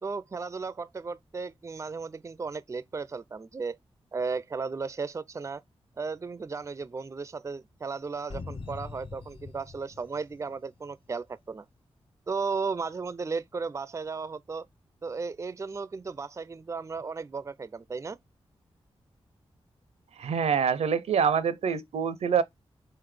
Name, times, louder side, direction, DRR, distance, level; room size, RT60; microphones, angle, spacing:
voice 1, 0.0-3.8 4.1-5.6 6.0-11.7 12.3-14.6 15.0-18.2, right 4 dB, 30° right, 0.4 m, -35 dB
sound 1, 8.3-11.0, left 4 dB, 60° left, 0.8 m, -43 dB
voice 2, 20.2-22.4, right 7 dB, 80° right, 0.5 m, -25 dB
4.2 x 3.8 x 3.1 m
cardioid pair, 55°, 11 cm